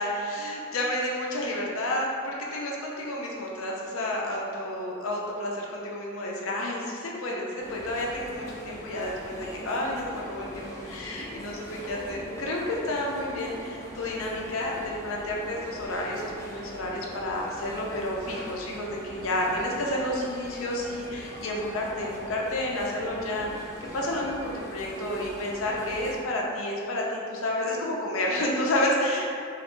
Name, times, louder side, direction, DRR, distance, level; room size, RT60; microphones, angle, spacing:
voice 1, 0.0-2.1 2.5-29.3, left 1 dB, 85° left, -2 dB, 0.5 m, -30 dB
sound 1, 7.6-26.2, equal, 15° left, 0.3 m, -42 dB
3.0 x 2.4 x 3.1 m, 2.4 s
head